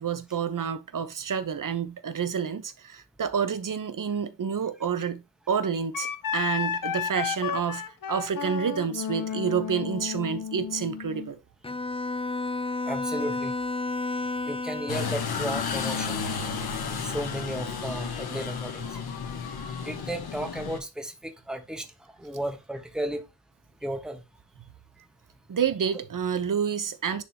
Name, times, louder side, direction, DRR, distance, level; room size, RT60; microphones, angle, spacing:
voice 1, 0.0-5.2 5.5-7.8 8.1-11.4 25.5-27.2, right 7 dB, 60° right, 1.0 m, -29 dB
Wind instrument woodwind instrument, 5.9-11.3, left 8 dB, 65° left, 0.7 m, -32 dB
Bowed string instrument, 11.6-15.3, left 3 dB, 15° left, 0.5 m, -31 dB
voice 2, 12.9-13.5 14.4-16.2 16.9-18.8 19.8-21.9 22.2-23.2 23.8-24.2, right 1 dB, ahead, 1.2 m, -34 dB
sound 1, 14.9-20.8, left 6 dB, 90° left, 1.2 m, -32 dB
10.0 x 4.0 x 2.8 m
cardioid pair, 70°, 36 cm